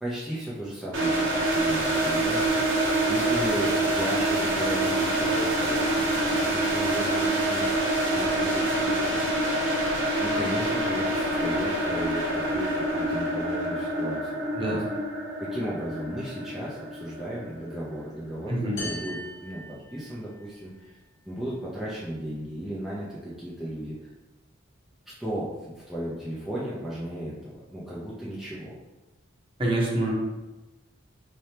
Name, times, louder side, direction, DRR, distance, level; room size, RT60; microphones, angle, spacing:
voice 1, 0.0-2.5 3.1-7.8 8.1-9.2 10.2-14.8 15.4-20.9 21.3-24.0 25.2-28.7, right 1 dB, ahead, -9 dB, 0.6 m, -35 dB
sound 1, 0.9-17.8, right 1 dB, 85° right, 1.2 m, -26 dB
voice 2, 14.5-14.9 18.5-18.8 29.6-30.1, right 1 dB, 30° right, -4 dB, 1.0 m, -26 dB
sound 2, 18.8-20.5, left 1 dB, 65° left, 1.0 m, -39 dB
4.3 x 3.3 x 2.8 m, 1.1 s
head